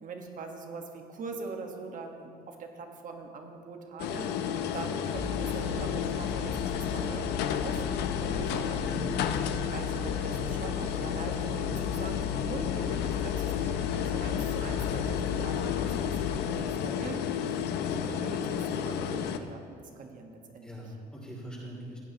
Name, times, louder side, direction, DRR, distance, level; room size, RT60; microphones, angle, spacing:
voice 1, 0.0-4.3 4.7-9.0 9.7-17.3 17.9-20.9, right 4 dB, 50° right, 3 dB, 1.4 m, -42 dB
sound 1, 4.0-19.4, left 8 dB, 80° left, 0.6 m, -32 dB
sound 2, 5.1-16.5, left 8 dB, 35° left, 1.3 m, -36 dB
voice 2, 8.7-9.0 10.2-10.4 20.6-22.0, equal, 5° left, -7 dB, 2.9 m, -42 dB
16.5 x 9.3 x 2.9 m, 2.4 s
cardioid pair, 110°, 17 cm